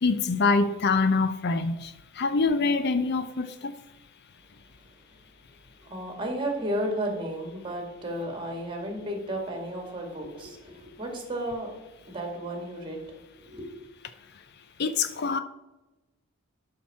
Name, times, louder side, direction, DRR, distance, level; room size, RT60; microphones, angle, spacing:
voice 1, 0.0-1.9 2.2-3.7 14.8-15.4, left 4 dB, 50° left, 11 dB, 0.5 m, -25 dB
voice 2, 5.8-11.7 12.0-13.7, right 1 dB, 25° right, 2 dB, 2.0 m, -33 dB
12.0 x 5.9 x 4.2 m, 1.0 s
head